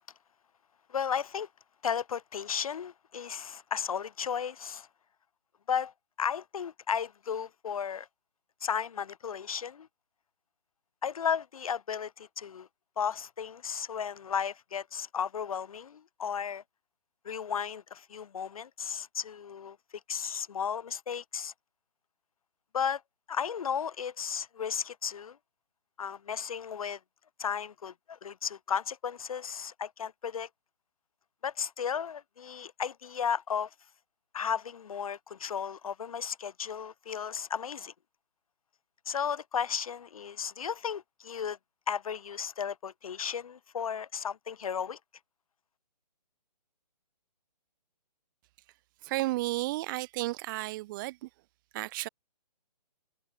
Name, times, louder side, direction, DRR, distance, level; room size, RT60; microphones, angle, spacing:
voice 1, 0.9-1.5 1.8-4.9 5.7-5.9 6.2-8.1 8.6-9.9 11.0-12.7 13.0-16.6 17.2-19.8 20.1-21.5 22.7-23.0 23.3-25.4 26.0-27.0 27.4-30.5 31.4-33.7 34.3-37.9 39.1-41.6 41.9-45.0, left 7 dB, 55° left, 2.6 m, -34 dB
voice 2, 49.0-51.3 51.7-52.1, right 19 dB, 30° right, 6.1 m, -33 dB
hypercardioid pair, 150°, 21 cm